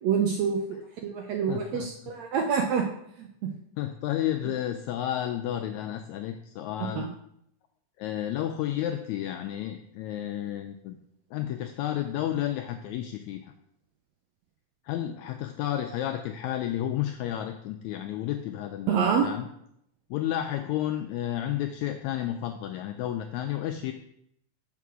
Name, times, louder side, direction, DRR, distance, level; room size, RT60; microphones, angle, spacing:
voice 1, 0.0-0.8 1.0-2.9 3.2-3.5 6.8-7.1 18.9-19.3, right 6 dB, 80° right, 3 dB, 1.6 m, -27 dB
voice 2, 1.5-1.9 3.8-7.1 8.0-11.0 11.3-13.4 14.9-19.5 20.1-23.9, left 12 dB, 85° left, 6 dB, 1.6 m, -31 dB
6.8 x 4.6 x 6.1 m, 0.74 s
omnidirectional pair, 3.8 m